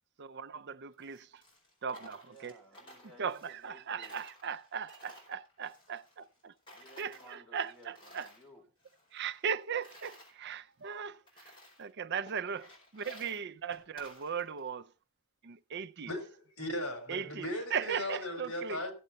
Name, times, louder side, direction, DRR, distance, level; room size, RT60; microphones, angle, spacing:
voice 1, 0.2-1.4 1.8-2.5 3.2-6.5 7.0-8.3 9.1-11.5 11.8-14.9 15.4-16.1 17.1-18.8, right 7 dB, 50° right, 0.5 m, -38 dB
Coin (dropping), 0.9-3.8 4.0-6.4 6.7-8.5 8.8-10.3 10.9-11.0 11.3-11.9 12.3-14.7, left 1 dB, 25° left, 4.7 m, -55 dB
voice 2, 2.2-4.2 6.7-8.7, equal, 5° left, 3.6 m, -57 dB
voice 3, 16.1-18.9, left 1 dB, 70° left, 3.8 m, -37 dB
15.5 x 7.9 x 4.1 m
head